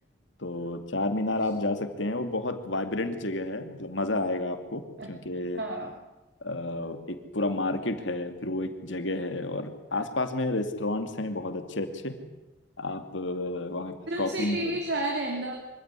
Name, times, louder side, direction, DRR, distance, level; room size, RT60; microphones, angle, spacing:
voice 1, 0.4-5.6 6.4-12.2 12.8-14.8, left 2 dB, 75° left, 8 dB, 2.5 m, -31 dB
voice 2, 5.5-5.9 14.1-15.6, right 1 dB, 60° right, 2 dB, 3.2 m, -31 dB
25.0 x 16.0 x 9.8 m, 1.1 s
head